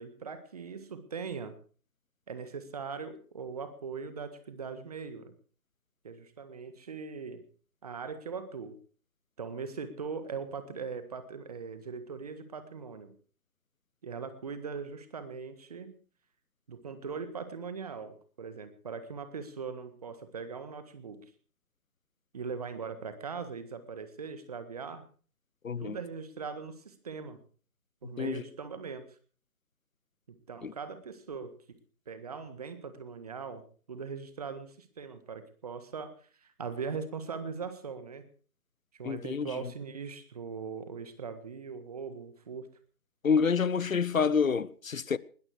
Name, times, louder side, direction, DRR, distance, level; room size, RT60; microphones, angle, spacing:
voice 1, 0.0-1.5 2.3-5.3 6.0-7.4 7.8-8.8 9.4-13.1 14.0-16.0 16.7-21.3 22.3-25.1 25.8-27.4 28.0-29.1 30.5-31.5 32.1-33.6 33.9-38.3 38.9-42.7, right 5 dB, 25° right, 1.6 m, -40 dB
voice 2, 25.6-26.0 28.2-28.4 30.6-30.7 39.0-39.7 43.2-45.2, left 6 dB, 65° left, 0.9 m, -28 dB
20.0 x 13.5 x 4.8 m
figure-of-eight pair, 160°, 44 cm